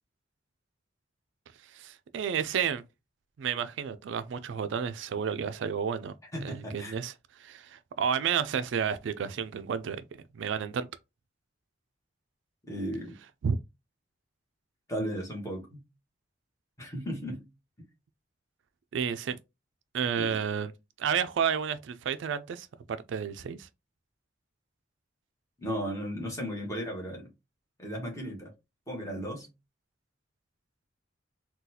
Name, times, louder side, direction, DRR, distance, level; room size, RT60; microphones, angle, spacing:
voice 1, 1.7-2.8 3.4-6.2 6.4-7.1 7.4-10.0 10.3-10.9 13.4-13.6 18.9-19.4 19.9-20.7 21.0-22.7 23.1-23.7, right 7 dB, 75° right, 0.3 m, -31 dB
voice 2, 6.3-6.9 12.7-13.2 14.9-15.8 16.8-17.4 20.2-20.4 25.6-27.3 27.8-28.5 28.9-29.5, equal, 15° left, 1.2 m, -35 dB
3.8 x 2.3 x 2.7 m
head